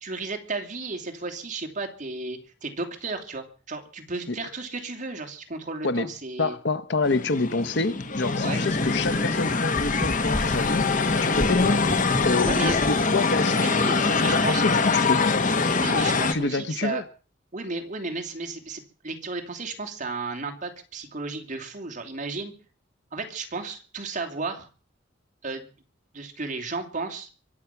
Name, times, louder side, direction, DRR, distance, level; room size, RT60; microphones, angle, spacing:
voice 1, 0.0-6.6 8.4-8.6 12.4-12.8 13.5-14.6 15.7-17.0 17.5-22.5 23.1-24.7 25.4-25.7 26.1-27.3, right 3 dB, 45° right, 2.9 m, -33 dB
voice 2, 6.4-11.8 12.2-15.4 16.3-17.0, left 3 dB, 65° left, 1.0 m, -27 dB
sound 1, 7.0-16.3, left 4 dB, 45° left, 1.3 m, -24 dB
sound 2, 8.7-13.0, equal, 10° left, 0.8 m, -34 dB
24.0 x 8.5 x 5.9 m
head